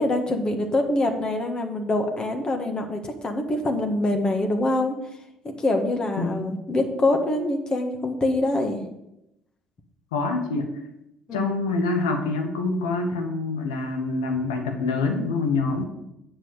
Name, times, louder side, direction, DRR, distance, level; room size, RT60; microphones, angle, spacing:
voice 1, 0.0-4.9 5.6-8.8 11.3-11.5, left 2 dB, 35° left, 4 dB, 1.6 m, -24 dB
voice 2, 6.2-6.5 10.1-10.7 11.3-15.9, left 3 dB, 90° left, 4 dB, 1.2 m, -26 dB
8.0 x 5.6 x 6.5 m, 0.86 s
hypercardioid pair, 60°, 2 cm